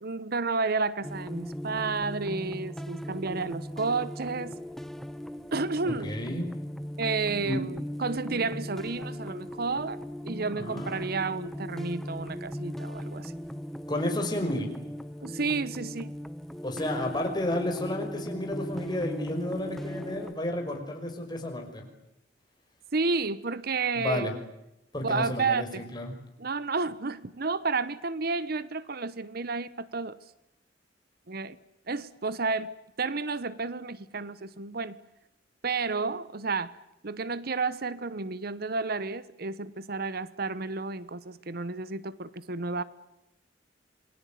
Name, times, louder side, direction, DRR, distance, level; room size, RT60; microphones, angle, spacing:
voice 1, 0.0-4.6 5.5-6.1 7.0-10.0 10.2-13.3 15.2-16.1 22.9-24.3 25.0-25.8 26.4-30.2 31.3-31.6 31.9-32.7 33.0-35.0 35.6-36.8 37.0-42.8, right 4 dB, 55° right, 1.0 m, -31 dB
sound 1, 1.0-20.3, equal, ahead, 1.0 m, -38 dB
voice 2, 5.8-6.5 7.4-7.6 10.5-11.0 13.9-14.7 16.6-21.8 24.0-24.3 24.9-26.1, left 1 dB, 25° left, 5.9 m, -32 dB
28.0 x 21.5 x 9.3 m
head